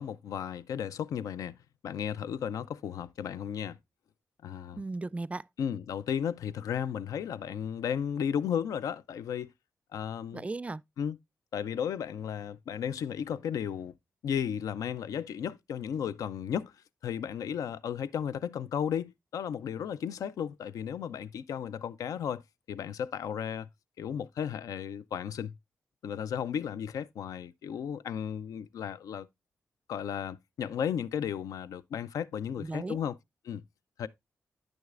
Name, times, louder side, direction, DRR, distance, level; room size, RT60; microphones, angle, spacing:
voice 1, 0.0-1.6 1.8-3.8 4.4-4.8 5.6-9.5 9.9-10.5 11.0-11.2 11.5-13.9 14.2-16.7 17.0-22.4 22.7-23.7 24.0-25.5 26.0-29.3 29.9-33.2 33.4-33.6 34.0-34.1, left 8 dB, 85° left, 0.4 m, -34 dB
voice 2, 4.7-5.4 10.3-10.8 32.6-33.0, right 3 dB, 25° right, 0.3 m, -36 dB
8.8 x 6.3 x 2.4 m
cardioid pair, 55°, 6 cm